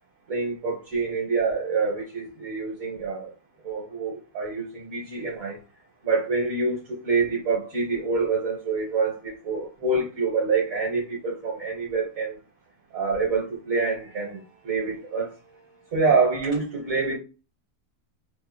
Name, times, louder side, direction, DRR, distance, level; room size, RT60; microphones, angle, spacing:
voice 1, 0.3-3.3 3.6-5.6 6.0-12.4 12.9-14.4 14.6-15.3 15.9-17.2, right 4 dB, 60° right, 1.4 m, -26 dB
4.4 x 2.7 x 2.2 m
omnidirectional pair, 1.7 m